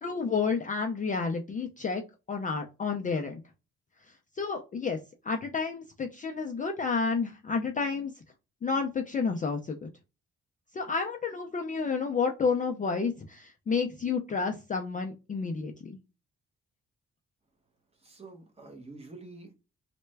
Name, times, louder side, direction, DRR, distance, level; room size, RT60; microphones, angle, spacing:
voice 1, 0.0-2.0 2.3-3.4 4.4-5.0 5.2-8.1 8.6-9.9 10.7-16.0, left 5 dB, 30° left, 2 dB, 0.3 m, -30 dB
voice 2, 18.0-19.5, right 3 dB, 20° right, 3 dB, 0.9 m, -47 dB
3.3 x 2.1 x 3.1 m, 0.29 s
wide cardioid pair, 150°, 29 cm